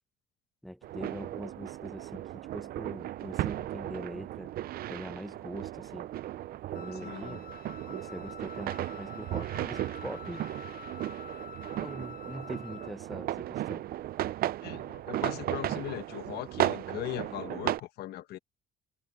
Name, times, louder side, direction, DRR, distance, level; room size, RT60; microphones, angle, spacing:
voice 1, 0.6-4.5 4.9-6.1 6.7-7.4 7.9-10.4 11.8-13.8, equal, ahead, 1.4 m, -43 dB
sound 1, 0.8-17.8, right 13 dB, 60° right, 0.7 m, -35 dB
Piano, 1.0-12.9, right 16 dB, 80° right, 6.8 m, -58 dB
Wind instrument woodwind instrument, 6.7-13.0, left 6 dB, 55° left, 1.2 m, -48 dB
voice 2, 7.0-7.4 14.6-18.4, left 14 dB, 75° left, 1.3 m, -39 dB
cardioid pair, 110°, 17 cm